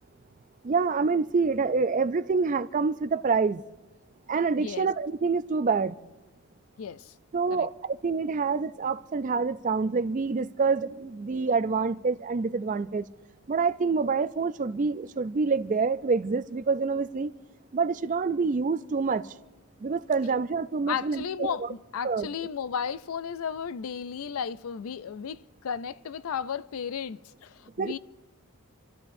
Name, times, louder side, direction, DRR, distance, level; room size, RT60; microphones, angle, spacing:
voice 1, 0.6-3.6 4.3-5.9 7.3-7.7 8.0-13.0 13.5-17.3 17.7-19.2 19.8-21.7 22.0-22.3 27.8-28.0, right 4 dB, 35° right, 0.3 m, -26 dB
voice 2, 6.8-7.1 7.5-7.7 20.9-28.0, left 7 dB, 70° left, 0.4 m, -34 dB
28.0 x 13.0 x 2.6 m
head